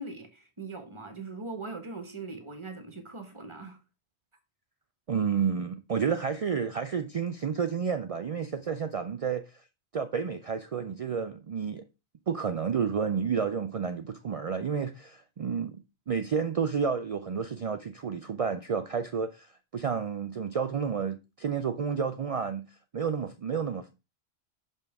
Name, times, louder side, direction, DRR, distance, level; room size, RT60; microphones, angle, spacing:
voice 1, 0.0-3.8, right 3 dB, 30° right, 1.0 m, -40 dB
voice 2, 5.1-9.4 9.9-11.9 12.3-19.5 19.7-22.7 22.9-23.9, right 6 dB, 55° right, 0.4 m, -30 dB
6.3 x 5.3 x 3.4 m
omnidirectional pair, 1.1 m